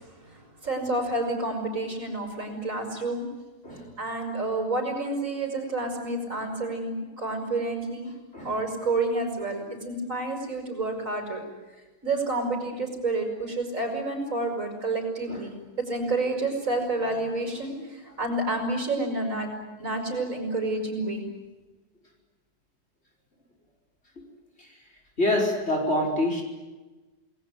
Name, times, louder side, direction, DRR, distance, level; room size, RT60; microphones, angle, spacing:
voice 1, 0.0-3.3 4.0-8.1 8.4-11.4 12.0-19.5 19.8-21.2, right 2 dB, 55° right, 3 dB, 6.7 m, -29 dB
voice 2, 25.2-26.4, left 1 dB, 40° left, 1 dB, 5.3 m, -26 dB
28.5 x 20.0 x 9.5 m, 1.2 s
omnidirectional pair, 1.7 m